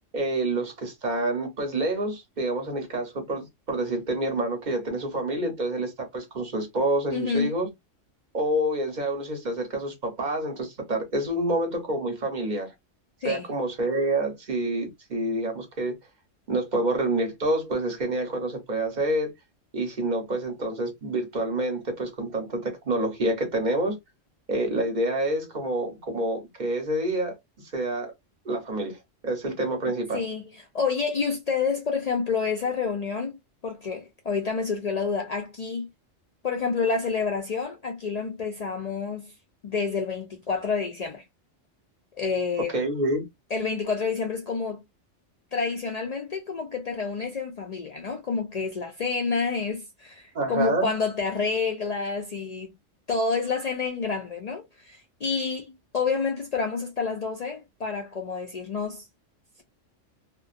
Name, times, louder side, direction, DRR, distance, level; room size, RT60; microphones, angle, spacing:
voice 1, 0.1-7.7 8.3-12.7 13.2-15.9 16.5-19.3 19.7-24.0 24.5-27.4 27.7-28.1 28.4-29.0 29.2-30.3 42.7-43.2 50.3-50.9, right 1 dB, 40° right, 0.8 m, -27 dB
voice 2, 7.1-7.5 13.2-13.5 30.1-35.9 36.4-39.3 39.6-41.2 42.2-42.7 43.5-44.8 45.5-52.7 53.1-59.0, left 5 dB, 75° left, 0.3 m, -28 dB
2.5 x 2.2 x 2.4 m
omnidirectional pair, 1.3 m